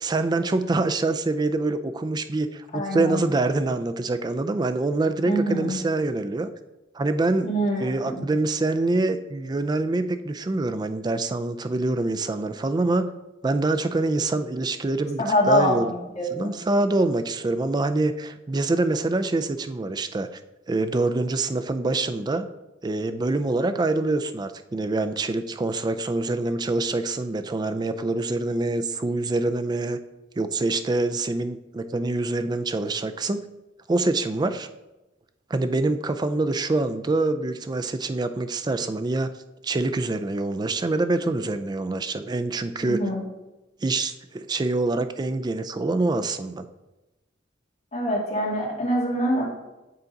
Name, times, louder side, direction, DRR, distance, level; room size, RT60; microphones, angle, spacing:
voice 1, 0.0-6.5 6.9-7.5 7.8-13.2 13.4-15.9 16.3-20.3 20.7-22.5 22.8-30.0 30.4-33.4 33.9-34.7 35.5-39.3 39.6-43.0 43.8-46.7, right 2 dB, 20° right, 10 dB, 0.3 m, -25 dB
voice 2, 2.7-3.2 5.3-5.8 7.4-8.2 15.2-16.6 42.8-43.2 47.9-49.4, equal, 35° left, -5 dB, 2.0 m, -25 dB
8.3 x 3.8 x 3.9 m, 1.0 s
head